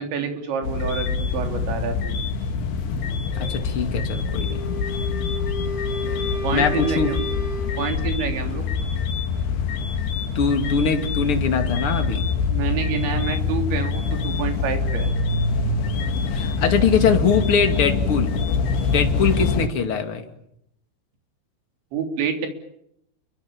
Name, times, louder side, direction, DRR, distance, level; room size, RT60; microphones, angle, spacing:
voice 1, 0.0-2.1 6.4-7.3 7.8-8.7 12.5-15.1 21.9-22.5, right 6 dB, 65° right, 5 dB, 5.5 m, -28 dB
sound 1, 0.6-19.7, left 4 dB, 60° left, 3.6 m, -25 dB
voice 2, 3.4-4.6 6.5-7.1 10.3-12.3 16.3-18.3 18.9-20.2, left 5 dB, 40° left, 6 dB, 2.2 m, -22 dB
Wind instrument woodwind instrument, 4.4-7.9, equal, 10° right, 6.6 m, -32 dB
30.0 x 23.5 x 7.2 m, 0.76 s
omnidirectional pair, 5.9 m